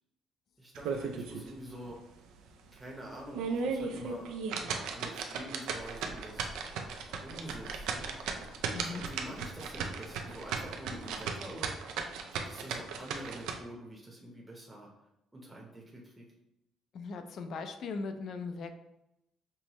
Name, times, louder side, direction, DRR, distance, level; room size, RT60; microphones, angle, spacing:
voice 1, 0.6-2.0 2.7-4.3 4.6-6.5 7.2-8.1 8.9-11.7 12.4-14.9 15.3-16.2, right 1 dB, 10° right, -3 dB, 0.8 m, -46 dB
sound 1, 0.8-1.5 1.9-2.0 2.5-2.6 3.2-13.6, right 5 dB, 80° right, 0.4 m, -36 dB
Bird vocalization bird call bird song, 5.6-11.4, equal, 20° left, 0.8 m, -51 dB
voice 2, 16.9-18.7, left 4 dB, 55° left, 7 dB, 0.4 m, -39 dB
5.4 x 2.1 x 3.0 m, 0.86 s
cardioid pair, 105°, 0 cm